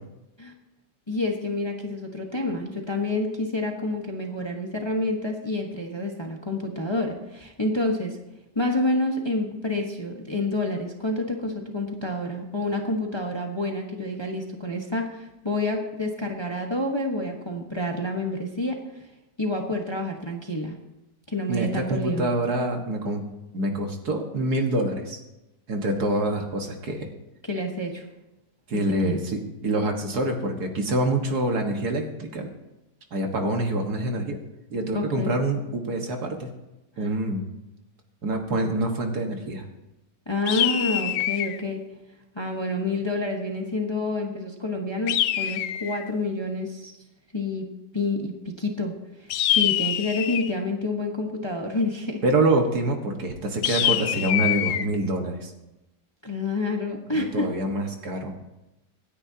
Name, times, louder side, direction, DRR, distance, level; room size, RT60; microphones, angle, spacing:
voice 1, 1.1-8.2 8.5-19.0 19.4-20.8 21.3-22.3 27.5-28.0 29.0-29.2 34.9-35.4 37.0-37.1 40.3-41.8 42.3-46.9 47.3-47.7 47.9-48.9 49.2-52.2 56.2-57.5, left 2 dB, 15° left, 1 dB, 1.2 m, -28 dB
voice 2, 21.5-23.2 23.5-25.2 25.7-27.1 28.7-32.5 33.1-34.4 34.7-36.5 37.0-37.4 38.2-39.6 52.2-55.5 57.1-58.3, right 1 dB, 65° right, 3 dB, 2.1 m, -26 dB
sound 1, 40.5-41.6 45.1-46.1 49.3-50.6 53.6-54.9, left 12 dB, 80° left, 1.2 m, -25 dB
26.0 x 9.9 x 2.9 m, 0.98 s
omnidirectional pair, 1.8 m